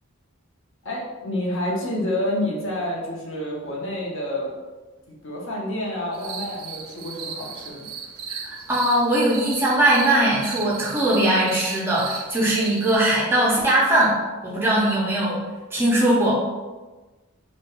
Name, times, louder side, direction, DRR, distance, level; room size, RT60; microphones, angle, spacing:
voice 1, 0.8-4.5 5.2-7.9, left 1 dB, 60° left, -3 dB, 0.6 m, -28 dB
sound 1, 6.1-13.0, right 6 dB, 85° right, 0.4 m, -36 dB
voice 2, 8.3-14.2 14.4-15.4 15.7-16.4, right 1 dB, 10° right, -5 dB, 0.4 m, -20 dB
2.3 x 2.1 x 2.9 m, 1.2 s
head